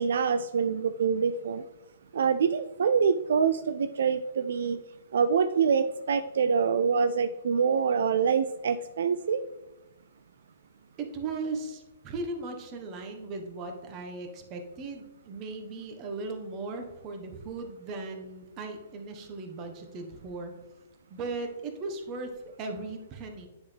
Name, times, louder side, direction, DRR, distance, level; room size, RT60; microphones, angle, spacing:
voice 1, 0.0-1.6 2.1-4.8 5.1-9.4, right 6 dB, 75° right, 10 dB, 0.3 m, -25 dB
voice 2, 11.0-20.5 21.1-23.5, right 3 dB, 35° right, 4 dB, 1.2 m, -37 dB
9.4 x 4.1 x 3.4 m, 1.0 s
hypercardioid pair, 125°, 0 cm